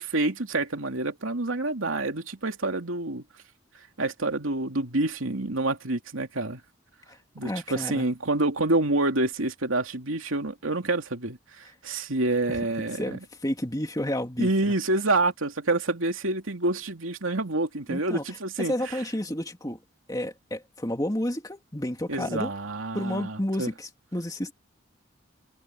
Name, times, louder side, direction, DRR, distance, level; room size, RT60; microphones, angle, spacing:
voice 1, 0.0-3.2 4.0-6.6 7.3-13.2 14.4-19.0 22.1-23.7, right 2 dB, 90° right, 2.8 m, -27 dB
voice 2, 7.4-8.0 12.5-12.6 12.9-14.7 17.9-18.2 18.6-19.8 20.1-22.5 22.9-24.5, left 1 dB, 20° left, 2.6 m, -31 dB
head